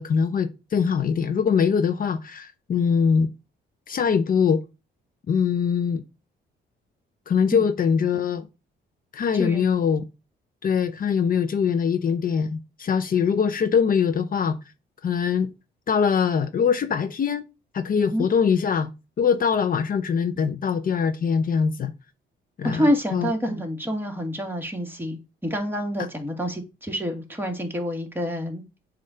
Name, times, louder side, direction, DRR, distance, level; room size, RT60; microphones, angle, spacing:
voice 1, 0.0-3.3 3.9-4.6 5.3-6.0 7.3-8.5 9.1-10.0 10.6-14.6 15.0-15.5 15.9-17.5 17.7-18.9 19.2-21.9 22.6-23.3, left 6 dB, 45° left, 0.6 m, -22 dB
voice 2, 9.3-9.6 18.0-18.3 22.6-28.6, equal, 10° right, 1.7 m, -27 dB
7.6 x 2.5 x 5.5 m
cardioid pair, 90°, 20 cm